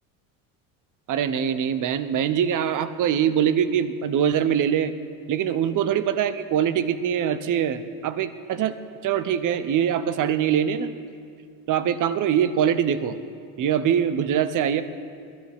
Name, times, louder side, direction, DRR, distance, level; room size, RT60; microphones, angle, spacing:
voice 1, 1.1-4.9 5.3-8.8 9.0-10.9 11.7-13.2 13.6-14.8, right 9 dB, 45° right, 12 dB, 0.9 m, -23 dB
22.0 x 13.0 x 3.7 m, 2.3 s
hypercardioid pair, 85°, 45 cm